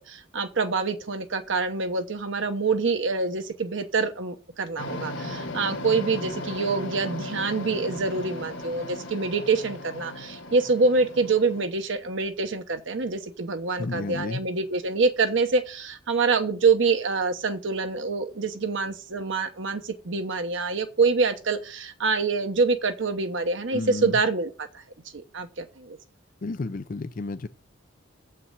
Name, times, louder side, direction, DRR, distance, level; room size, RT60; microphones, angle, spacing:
voice 1, 0.0-24.8 25.1-26.0, right 4 dB, 65° right, 1.0 m, -26 dB
sound 1, 4.8-11.7, left 1 dB, 60° left, 1.9 m, -36 dB
voice 2, 13.8-14.4 23.7-24.2 26.4-27.5, left 3 dB, 40° left, 0.4 m, -32 dB
7.8 x 5.7 x 7.2 m
head